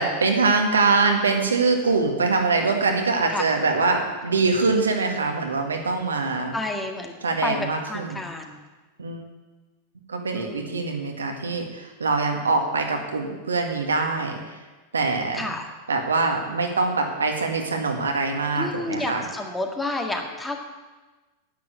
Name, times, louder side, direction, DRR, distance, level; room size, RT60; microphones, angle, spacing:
voice 1, 0.0-6.6 7.2-8.2 9.0-9.2 10.1-14.4 14.9-15.5 15.9-19.2, right 3 dB, 75° right, 3 dB, 1.8 m, -23 dB
voice 2, 6.5-7.1 7.4-8.6 10.3-10.8 15.3-15.7 18.6-20.6, left 2 dB, 10° left, 3 dB, 1.9 m, -30 dB
10.5 x 9.5 x 8.1 m, 1.2 s
figure-of-eight pair, 90°, 0 cm